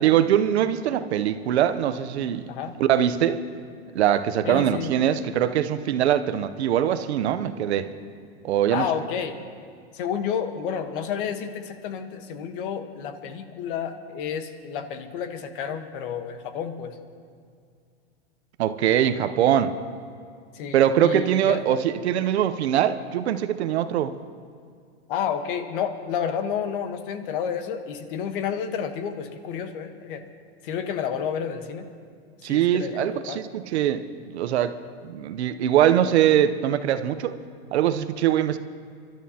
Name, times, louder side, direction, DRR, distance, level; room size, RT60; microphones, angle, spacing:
voice 1, 0.0-2.5 2.8-3.4 3.9-7.9 8.4-8.9 18.6-19.8 20.7-24.1 32.4-34.0 34.3-34.7 35.0-37.3 37.7-38.6, right 10 dB, 85° right, 11 dB, 0.8 m, -22 dB
voice 2, 4.4-5.0 8.7-9.4 9.9-17.0 20.5-21.8 25.1-30.2 30.6-31.8 32.5-33.4, left 7 dB, 55° left, 8 dB, 1.2 m, -30 dB
28.5 x 12.5 x 2.8 m, 2.2 s
supercardioid pair, 145°, 32 cm